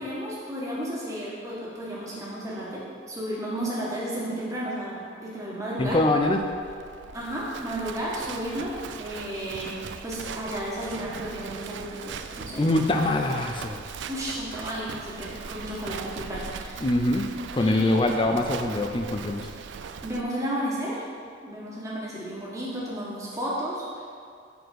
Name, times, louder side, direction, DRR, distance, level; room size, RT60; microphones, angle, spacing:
voice 1, 0.0-6.0 7.1-9.7 10.0-12.6 14.1-16.8 17.6-18.1 20.0-21.0 21.4-24.0, right 1 dB, 15° right, -6 dB, 1.5 m, -33 dB
voice 2, 5.8-6.4 12.6-13.8 16.8-19.5, left 2 dB, 25° left, 4 dB, 0.4 m, -24 dB
Livestock farm animals working animals, 5.8-20.2, right 6 dB, 65° right, 0.3 m, -40 dB
6.7 x 4.3 x 6.4 m, 2.3 s
head